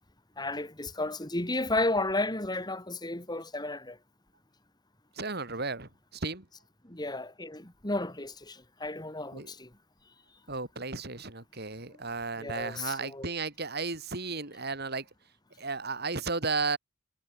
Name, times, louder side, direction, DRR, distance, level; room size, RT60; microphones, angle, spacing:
voice 1, 0.4-4.0 6.8-9.7 12.4-13.3, left 2 dB, 20° left, 3.4 m, -33 dB
voice 2, 5.2-6.4 9.3-9.5 10.5-15.0 15.6-16.8, right 4 dB, 55° right, 5.1 m, -34 dB
head